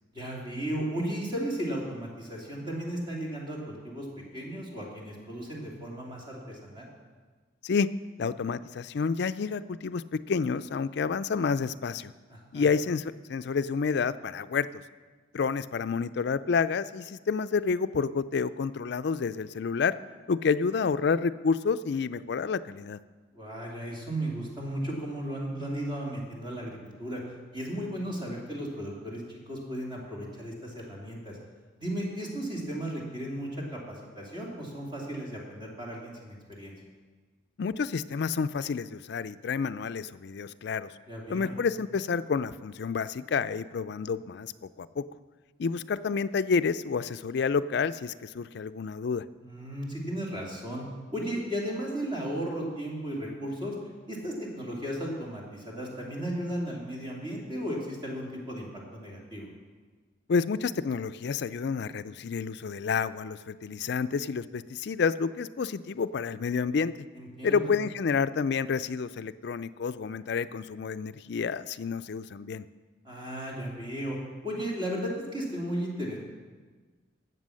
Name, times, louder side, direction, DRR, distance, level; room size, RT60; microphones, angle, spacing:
voice 1, 0.1-4.1 4.3-6.9 12.3-12.7 23.3-27.2 27.5-31.4 31.8-36.8 41.1-41.5 49.4-50.8 51.1-53.7 54.1-58.7 58.9-59.5 67.1-67.7 73.0-74.2 74.4-76.2, right 1 dB, 25° right, -3 dB, 2.6 m, -35 dB
voice 2, 8.2-12.1 12.5-14.8 15.3-19.9 20.3-23.0 37.6-40.9 41.3-44.5 44.8-45.0 45.6-49.2 60.3-67.1 67.4-72.7, left 5 dB, 60° left, 14 dB, 0.4 m, -29 dB
13.0 x 7.9 x 6.4 m, 1.4 s
head